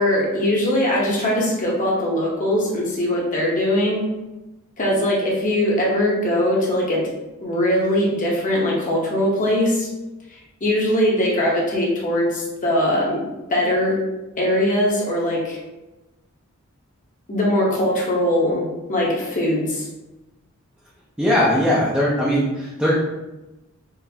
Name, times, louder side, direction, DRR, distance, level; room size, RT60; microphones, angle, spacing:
voice 1, 0.0-4.0 4.8-7.0 7.4-9.9 10.6-13.2 13.5-14.0 14.4-15.6 17.3-19.9, left 1 dB, 40° left, -3 dB, 0.9 m, -21 dB
voice 2, 21.2-22.9, equal, 5° right, -7 dB, 0.5 m, -19 dB
3.9 x 2.5 x 2.8 m, 1.0 s
head